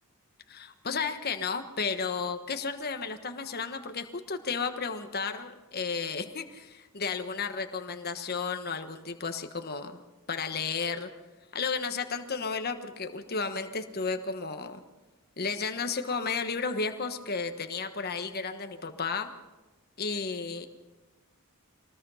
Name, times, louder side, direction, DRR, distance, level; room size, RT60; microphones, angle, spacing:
voice 1, 0.5-10.0 10.3-11.1 11.5-14.8 15.4-19.3 20.0-20.7, left 5 dB, 45° left, 7 dB, 1.3 m, -33 dB
24.5 x 19.5 x 5.7 m, 1.2 s
head